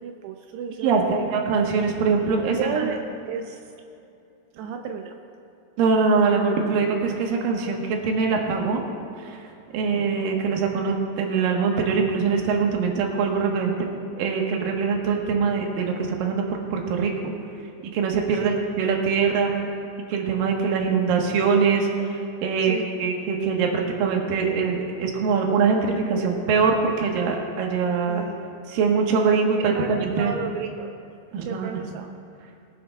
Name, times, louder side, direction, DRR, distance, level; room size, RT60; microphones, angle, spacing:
voice 1, 0.0-1.2 2.5-3.0 3.3-3.6 4.5-5.2 9.7-10.1 18.4-18.6 22.7-22.9 28.1-28.5 29.8-30.9 31.4-32.1, right 6 dB, 85° right, 4 dB, 2.7 m, -33 dB
voice 2, 0.8-2.9 5.8-8.9 9.2-9.5 9.7-13.9 14.2-17.3 17.9-19.5 20.1-28.2 28.7-30.3 31.3-31.8, right 5 dB, 65° right, 1 dB, 2.7 m, -23 dB
22.5 x 10.0 x 2.3 m, 2.7 s
omnidirectional pair, 4.8 m